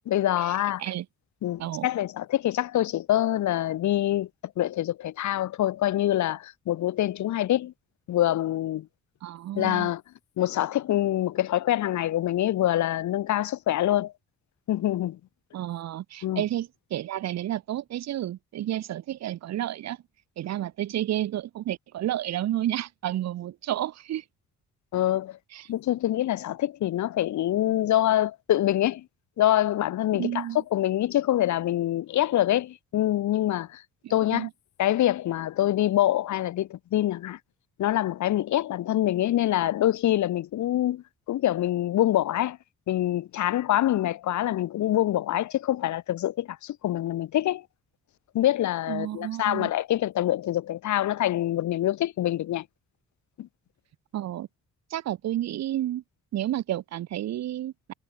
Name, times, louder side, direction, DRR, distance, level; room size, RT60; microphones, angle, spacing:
voice 1, 0.1-0.8 1.4-4.3 4.6-7.7 8.1-8.9 9.5-10.0 10.4-14.1 14.7-15.2 16.2-16.4 24.9-25.4 25.7-29.0 29.4-30.5 30.7-33.8 34.1-34.5 34.8-37.4 37.8-42.6 42.9-47.6 48.3-52.6 53.4-53.5, left 13 dB, 70° left, 1.2 m, -25 dB
voice 2, 9.2-9.9 15.5-20.0 20.4-24.2 25.5-25.7 30.1-30.6 34.0-34.5 48.9-49.7 54.1-54.5 54.9-56.0 56.3-57.9, right 13 dB, 60° right, 0.7 m, -31 dB
cardioid pair, 90°, 30 cm